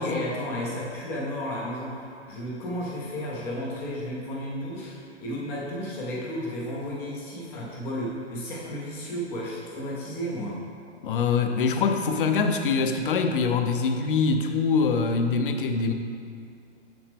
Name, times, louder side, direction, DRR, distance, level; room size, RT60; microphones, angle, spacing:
voice 1, 0.0-10.6, equal, 5° left, -4 dB, 0.4 m, -33 dB
voice 2, 11.0-15.9, left 5 dB, 50° left, 6 dB, 0.6 m, -24 dB
6.4 x 6.0 x 3.5 m, 2.4 s
figure-of-eight pair, 125°, 35 cm